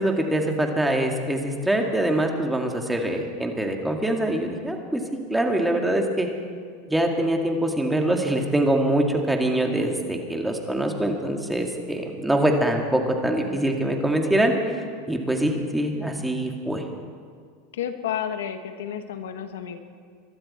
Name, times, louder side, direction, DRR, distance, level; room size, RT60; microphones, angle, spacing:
voice 1, 0.0-5.0 5.3-6.3 6.9-16.8, right 1 dB, 5° right, 2 dB, 2.0 m, -24 dB
voice 2, 17.7-19.8, left 9 dB, 85° left, 8 dB, 1.2 m, -31 dB
23.5 x 12.5 x 4.3 m, 2.1 s
supercardioid pair, 120°, 0 cm